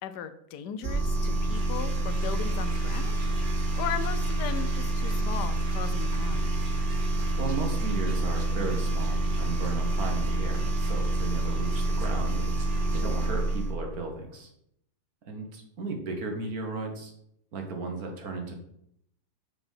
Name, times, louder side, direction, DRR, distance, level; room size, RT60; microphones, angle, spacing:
voice 1, 0.0-3.2 3.8-6.5, left 8 dB, 80° left, 11 dB, 1.3 m, -37 dB
sound 1, 0.8-13.8, right 1 dB, 35° right, 1.0 m, -27 dB
voice 2, 7.4-14.5 15.3-17.1 17.5-18.5, right 3 dB, 65° right, 3 dB, 1.8 m, -35 dB
6.0 x 5.2 x 5.6 m, 0.73 s
omnidirectional pair, 1.8 m